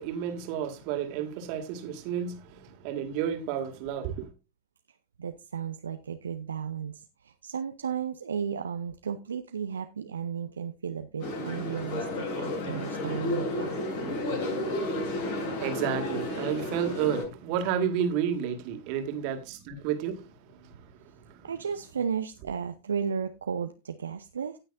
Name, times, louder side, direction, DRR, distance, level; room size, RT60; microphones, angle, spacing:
voice 1, 0.0-4.3 14.6-20.8 21.2-21.5, right 8 dB, 45° right, 2.1 m, -32 dB
voice 2, 5.2-13.8 21.4-24.6, right 7 dB, 70° right, 0.7 m, -34 dB
sound 1, 11.2-17.2, left 1 dB, 50° left, 6.9 m, -32 dB
18.0 x 6.3 x 2.5 m
figure-of-eight pair, 90°, 0 cm